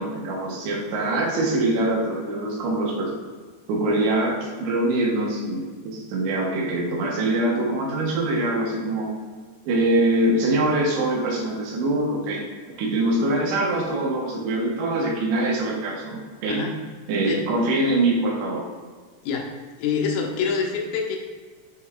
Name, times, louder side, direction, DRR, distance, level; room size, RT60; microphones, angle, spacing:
voice 1, 0.0-3.1 3.7-9.1 9.7-12.4 12.8-16.6 17.1-18.6, right 1 dB, 85° right, -2 dB, 3.4 m, -24 dB
voice 2, 19.8-21.2, left 5 dB, 85° left, 1 dB, 1.9 m, -25 dB
9.3 x 3.3 x 3.7 m, 1.5 s
omnidirectional pair, 5.0 m